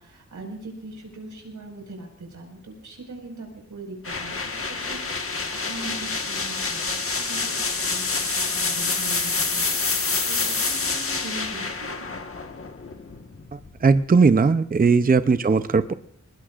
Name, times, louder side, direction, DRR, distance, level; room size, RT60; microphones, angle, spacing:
voice 1, 0.0-12.1, right 2 dB, 90° right, 2 dB, 5.4 m, -41 dB
sound 1, 4.0-13.8, left 4 dB, 45° left, 1.5 m, -27 dB
voice 2, 13.8-15.9, right 4 dB, 30° right, 11 dB, 0.6 m, -18 dB
23.0 x 20.0 x 2.5 m, 0.69 s
wide cardioid pair, 85°, 30 cm